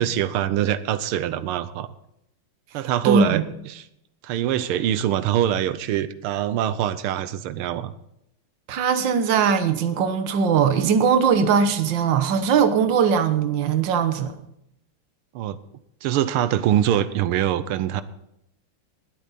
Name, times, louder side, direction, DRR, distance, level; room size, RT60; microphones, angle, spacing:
voice 1, 0.0-1.9 2.7-3.8 4.2-7.9 15.3-15.6 16.0-18.0, right 11 dB, 85° right, 1.6 m, -24 dB
voice 2, 3.0-3.4 8.7-14.3, right 6 dB, 60° right, 1.7 m, -20 dB
20.5 x 8.5 x 4.1 m
omnidirectional pair, 2.4 m